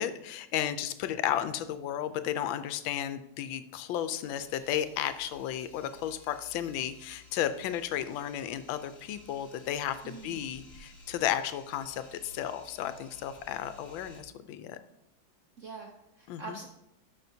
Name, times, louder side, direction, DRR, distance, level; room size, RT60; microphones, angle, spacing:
voice 1, 0.0-14.8 16.3-16.6, left 10 dB, 85° left, 11 dB, 1.4 m, -33 dB
sound 1, 3.9-14.2, left 1 dB, 25° left, 1.7 m, -55 dB
voice 2, 10.0-10.5 15.6-16.7, right 3 dB, 65° right, 2 dB, 0.7 m, -44 dB
11.0 x 6.2 x 2.7 m, 0.83 s
omnidirectional pair, 2.1 m